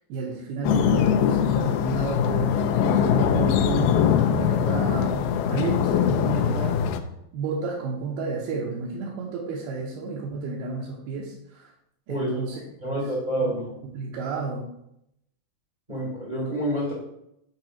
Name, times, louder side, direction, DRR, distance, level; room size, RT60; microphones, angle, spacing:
voice 1, 0.1-6.9 7.3-11.7 12.1-12.9 13.4-13.5 13.9-14.7, right 4 dB, 75° right, -5 dB, 2.7 m, -31 dB
sound 1, 0.6-7.0, left 8 dB, 85° left, 2.3 m, -22 dB
voice 2, 12.8-13.6 15.9-16.9, equal, 35° right, -7 dB, 0.7 m, -27 dB
8.7 x 4.7 x 3.0 m, 0.78 s
omnidirectional pair, 4.7 m